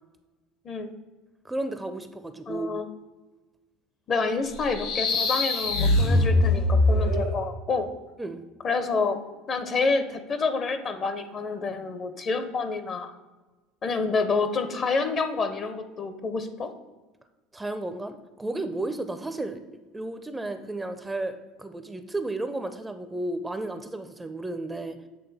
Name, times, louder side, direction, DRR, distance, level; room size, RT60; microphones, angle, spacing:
voice 1, 1.4-2.7 8.2-8.4 17.5-19.6 19.9-25.1, right 2 dB, 10° right, 9 dB, 0.4 m, -33 dB
voice 2, 2.5-2.9 4.1-7.9 8.6-9.2 9.5-13.1 13.8-16.7, left 4 dB, 40° left, 9 dB, 0.6 m, -28 dB
sound 1, 4.5-7.4, left 2 dB, 65° left, 1.4 m, -22 dB
7.8 x 3.3 x 4.0 m, 1.2 s
supercardioid pair, 110°, 0 cm